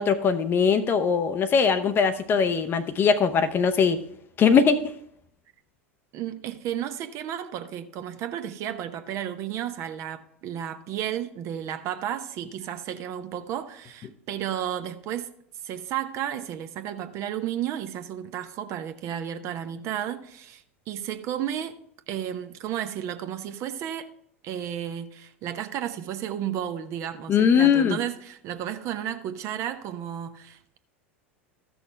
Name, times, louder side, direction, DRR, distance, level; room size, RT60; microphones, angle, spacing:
voice 1, 0.0-4.0 4.4-4.9 27.3-28.0, left 6 dB, 30° left, 0.7 m, -21 dB
voice 2, 6.1-15.3 15.6-21.8 22.1-24.1 24.4-30.8, right 10 dB, 45° right, 0.8 m, -33 dB
14.0 x 6.3 x 3.3 m
figure-of-eight pair, 80°, 7 cm